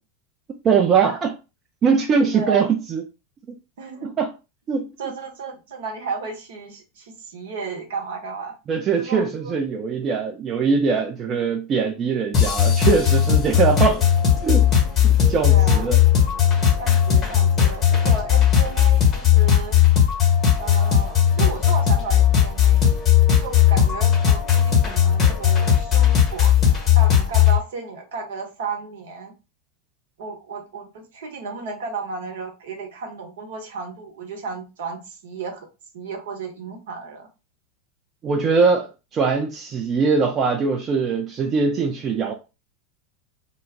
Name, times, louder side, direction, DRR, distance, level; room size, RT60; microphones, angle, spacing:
voice 1, 0.6-1.4 1.8-3.0 4.0-4.3 4.7-4.9 8.7-14.0 14.4-14.7 15.0-16.0 38.2-38.9 39.1-42.3, right 5 dB, 30° right, 0.4 m, -21 dB
voice 2, 2.3-2.7 3.8-4.1 5.0-8.6 9.0-9.5 15.5-15.9 16.8-19.8 20.6-22.8 23.4-26.6 26.9-29.3 30.2-35.7 35.9-37.3, right 4 dB, 65° right, 0.8 m, -33 dB
sound 1, 12.3-27.6, left 9 dB, 30° left, 1.0 m, -17 dB
2.2 x 2.0 x 3.5 m
figure-of-eight pair, 85°, 0 cm